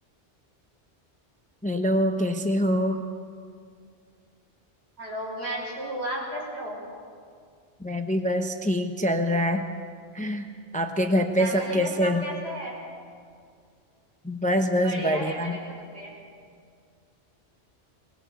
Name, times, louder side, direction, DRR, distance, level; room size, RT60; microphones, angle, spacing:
voice 1, 1.6-3.0 7.8-9.6 10.1-10.5 10.7-12.2 14.2-15.6, equal, 5° left, 5 dB, 0.9 m, -25 dB
voice 2, 5.0-6.8 11.4-12.8 14.8-16.1, right 1 dB, 70° right, -3 dB, 6.4 m, -34 dB
21.0 x 20.5 x 8.2 m, 2.2 s
omnidirectional pair, 1.2 m